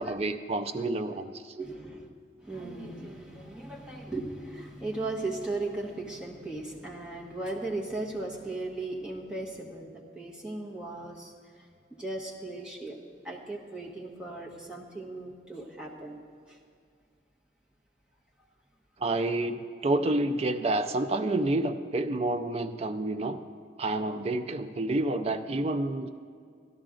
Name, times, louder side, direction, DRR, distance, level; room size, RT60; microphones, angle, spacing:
voice 1, 0.0-1.4 19.0-23.4 23.8-26.1, right 2 dB, 35° right, 8 dB, 0.4 m, -29 dB
voice 2, 1.6-2.1 2.4-11.3 11.9-13.0 13.2-16.2 16.5-16.6, right 2 dB, 5° right, -3 dB, 1.2 m, -37 dB
12.5 x 11.5 x 3.8 m, 2.2 s
head